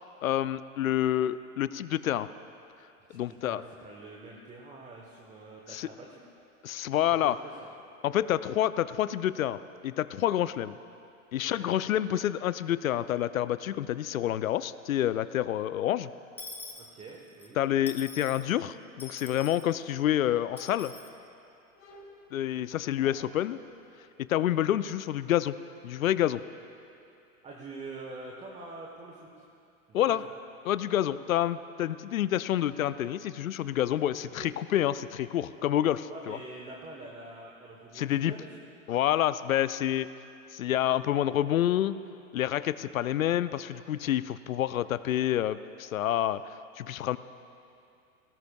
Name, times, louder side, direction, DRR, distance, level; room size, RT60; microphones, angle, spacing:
voice 1, 0.2-2.3 3.1-3.6 5.7-5.9 6.6-7.4 8.0-9.6 9.8-10.7 11.3-16.1 17.6-20.9 22.3-23.6 24.3-25.6 25.8-26.4 29.9-30.2 30.7-36.4 37.9-38.3 38.9-40.1 40.5-41.9 42.3-46.4 46.8-47.2, left 12 dB, 75° left, 15 dB, 0.5 m, -28 dB
voice 2, 3.1-6.2 7.0-7.7 11.4-11.7 16.7-17.6 22.5-22.9 27.4-29.5 29.9-30.3 34.4-34.6 36.1-38.6, right 3 dB, 15° right, -1 dB, 1.1 m, -45 dB
Dishes pots and pans / Coin (dropping), 16.4-17.5 17.9-18.5 19.0-19.7 20.6-21.1, left 3 dB, 5° left, 0.8 m, -45 dB
sound 1, 19.2-20.0 20.4-21.1 21.7-23.5, left 3 dB, 55° left, 2.6 m, -53 dB
18.5 x 16.5 x 2.3 m, 2.6 s
figure-of-eight pair, 100°, 42 cm